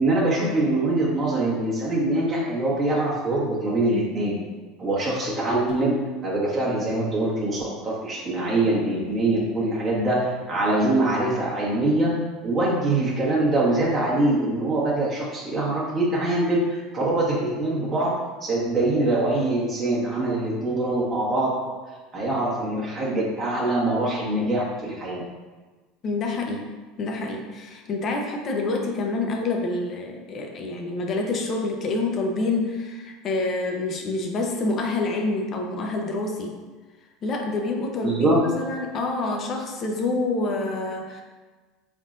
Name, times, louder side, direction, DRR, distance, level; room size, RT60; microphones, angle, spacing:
voice 1, 0.0-4.4 4.8-12.1 12.4-18.1 18.4-21.5 22.1-25.2 38.0-38.5, right 2 dB, 35° right, -5 dB, 1.2 m, -23 dB
voice 2, 26.0-26.7 27.0-36.6 37.2-41.2, left 3 dB, 45° left, 2 dB, 0.6 m, -27 dB
4.0 x 3.6 x 2.5 m, 1.3 s
hypercardioid pair, 80°, 0 cm